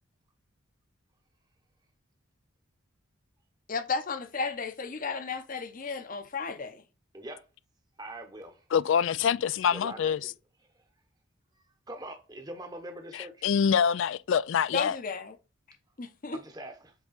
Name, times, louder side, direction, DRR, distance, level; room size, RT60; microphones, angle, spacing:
voice 1, 3.7-6.8 14.7-15.3 16.0-16.4, left 4 dB, 40° left, 0.8 m, -33 dB
voice 2, 8.0-8.7 9.7-10.3 10.7-10.9 11.5-13.4 16.3-16.9, right 1 dB, 20° right, 0.9 m, -43 dB
voice 3, 8.7-10.2 13.1-15.0, left 7 dB, 65° left, 0.3 m, -25 dB
7.9 x 3.6 x 4.1 m
head